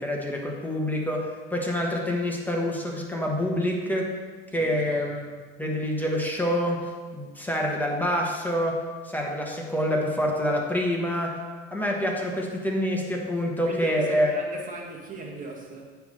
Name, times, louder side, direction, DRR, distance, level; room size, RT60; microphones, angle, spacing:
voice 1, 0.0-4.2 4.5-5.3 5.6-11.4 11.7-14.3, equal, 5° left, -1 dB, 1.3 m, -27 dB
voice 2, 4.5-5.0 13.6-15.9, right 3 dB, 25° right, -2 dB, 1.8 m, -38 dB
9.4 x 3.5 x 5.5 m, 1.4 s
supercardioid pair, 100°, 32 cm